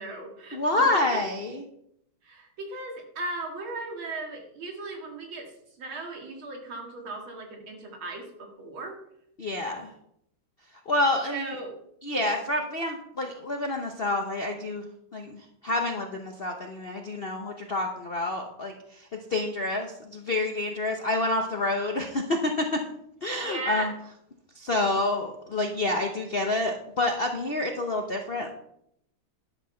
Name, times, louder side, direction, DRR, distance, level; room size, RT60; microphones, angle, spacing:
voice 1, 0.0-0.6 2.2-5.5 5.8-9.0 11.3-11.8 12.1-12.4 23.4-23.9, right 2 dB, 75° right, 1 dB, 2.8 m, -37 dB
voice 2, 0.5-1.6 9.4-9.9 10.9-11.5 12.0-14.9 15.1-22.8 23.2-23.9 24.6-28.5, left 2 dB, 55° left, 3 dB, 0.6 m, -28 dB
11.0 x 7.6 x 4.3 m, 0.75 s
omnidirectional pair, 2.2 m